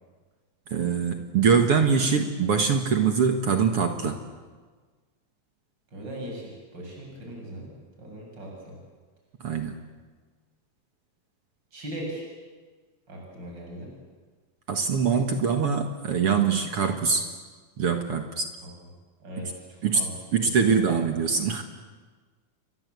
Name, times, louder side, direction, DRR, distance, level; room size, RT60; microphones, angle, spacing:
voice 1, 0.7-4.2 9.4-9.8 14.7-17.3 17.8-18.5 19.4-19.5 19.8-20.1 20.3-21.6, right 6 dB, 55° right, 5 dB, 2.2 m, -23 dB
voice 2, 5.9-7.7 8.0-8.7 11.7-12.3 13.1-13.9 18.6-18.7 19.2-19.7 19.9-20.9, equal, 35° right, -1 dB, 8.0 m, -39 dB
29.0 x 23.5 x 8.2 m, 1.4 s
omnidirectional pair, 3.6 m